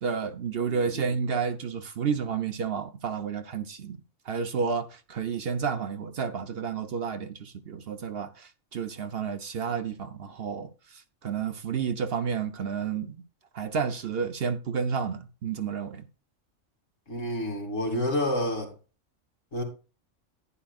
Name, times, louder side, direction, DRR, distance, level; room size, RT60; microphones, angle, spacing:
voice 1, 0.0-13.2 13.5-16.1, right 6 dB, 55° right, 0.9 m, -31 dB
voice 2, 17.1-18.7 19.5-19.6, left 1 dB, 80° left, 3.2 m, -28 dB
11.0 x 10.0 x 2.4 m
omnidirectional pair, 1.3 m